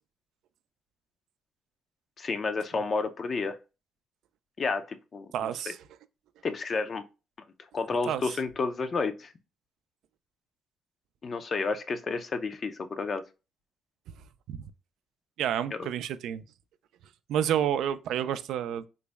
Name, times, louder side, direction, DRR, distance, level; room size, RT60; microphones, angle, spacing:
voice 1, 2.2-3.6 4.6-5.5 6.4-7.0 7.7-9.3 11.2-13.2 15.7-15.9, left 4 dB, 45° left, 0.5 m, -31 dB
voice 2, 5.3-5.8 8.1-8.2 14.5-14.6 15.4-16.4 17.3-18.8, right 10 dB, 80° right, 0.3 m, -29 dB
3.9 x 2.0 x 3.3 m
cardioid pair, 90°, 0 cm